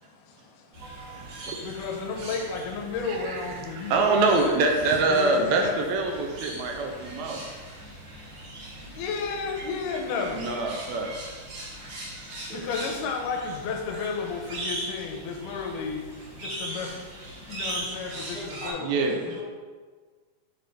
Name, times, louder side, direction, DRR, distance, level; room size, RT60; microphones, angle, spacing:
voice 1, 0.0-4.6 5.1-5.8 6.5-6.7 7.0-10.5 11.5-19.1, left 5 dB, 90° left, 2 dB, 2.3 m, -34 dB
sound 1, 0.7-18.7, right 1 dB, 60° right, 2.9 m, -40 dB
voice 2, 0.8-1.6 3.3-3.4 3.7-7.4 10.3-11.1 12.5-12.6 18.8-19.1, right 3 dB, 75° right, 2 dB, 1.7 m, -25 dB
voice 3, 18.3-19.4, equal, 5° right, -8 dB, 0.7 m, -39 dB
5.8 x 3.4 x 5.2 m, 1.5 s
omnidirectional pair, 3.6 m